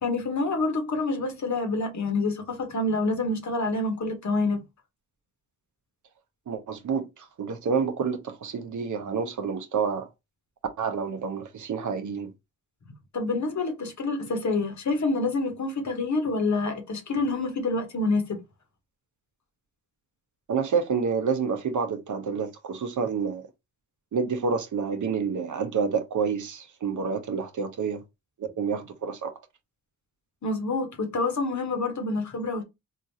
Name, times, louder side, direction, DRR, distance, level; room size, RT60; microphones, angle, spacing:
voice 1, 0.0-4.6 13.1-18.4 30.4-32.6, left 3 dB, 55° left, 1.1 m, -27 dB
voice 2, 6.5-10.1 10.8-12.3 20.5-23.5 24.1-28.0 28.4-29.3, right 5 dB, 60° right, 0.7 m, -28 dB
3.7 x 2.4 x 2.7 m
cardioid pair, 50°, 34 cm